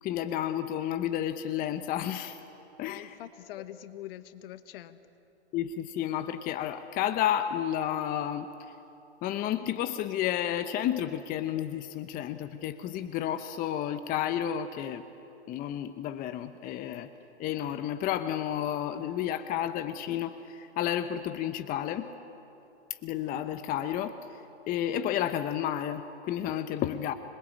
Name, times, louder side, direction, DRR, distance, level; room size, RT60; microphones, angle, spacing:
voice 1, 0.0-2.4 2.8-3.1 5.5-8.5 9.2-15.0 15.5-17.1 17.4-22.1 23.0-24.2 24.7-27.1, left 11 dB, 25° left, 11 dB, 0.8 m, -31 dB
voice 2, 2.8-5.0, left 13 dB, 55° left, 12 dB, 1.4 m, -44 dB
26.0 x 22.0 x 8.5 m, 3.0 s
hypercardioid pair, 125°, 35 cm